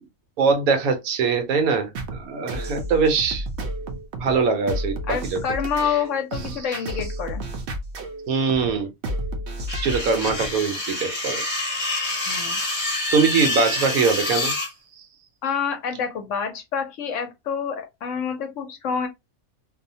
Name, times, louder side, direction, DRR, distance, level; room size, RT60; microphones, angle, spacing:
voice 1, 0.4-3.4 4.2-5.4 5.8-6.0 8.3-8.9 9.7-11.4 13.1-14.5 15.0-15.1, right 5 dB, 80° right, 1.1 m, -22 dB
sound 1, 1.9-10.6, right 1 dB, 60° right, 0.8 m, -32 dB
voice 2, 5.1-7.4 12.3-12.6 15.4-19.1, left 7 dB, 65° left, 0.9 m, -27 dB
sound 2, 9.7-14.7, left 2 dB, 30° left, 0.9 m, -27 dB
2.7 x 2.1 x 2.6 m
omnidirectional pair, 1.5 m